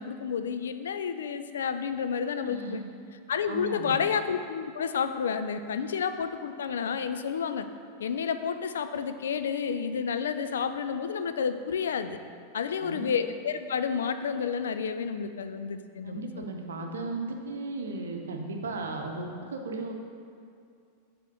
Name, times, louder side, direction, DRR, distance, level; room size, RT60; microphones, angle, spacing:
voice 1, 0.0-2.8 3.3-7.7 8.0-12.2 12.5-16.4, left 6 dB, 65° left, 9 dB, 0.3 m, -30 dB
voice 2, 2.4-2.9 3.5-4.0 12.8-13.1 16.0-19.9, right 3 dB, 65° right, 2 dB, 0.7 m, -36 dB
7.3 x 3.5 x 5.4 m, 2.3 s
figure-of-eight pair, 90°, 0 cm